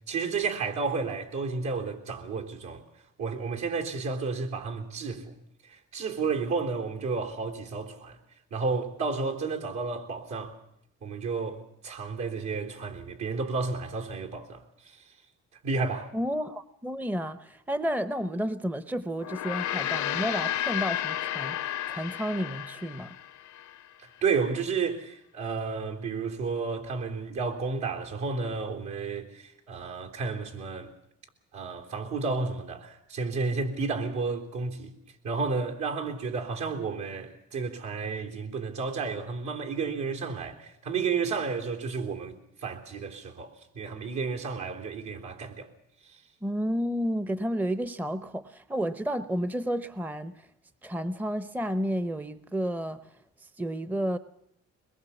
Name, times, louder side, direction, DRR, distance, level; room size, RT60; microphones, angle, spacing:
voice 1, 0.1-2.8 3.2-5.4 5.7-8.2 8.5-10.6 11.0-15.0 15.6-16.1 24.2-30.9 31.5-34.9 35.2-45.7 46.0-46.2, right 4 dB, 70° right, 3.6 m, -32 dB
voice 2, 16.1-23.2 46.4-50.5 50.8-53.0 53.4-54.2, equal, 5° right, 0.8 m, -31 dB
Gong, 19.2-23.8, left 12 dB, 70° left, 0.8 m, -32 dB
22.5 x 21.5 x 7.2 m
cardioid pair, 90°, 30 cm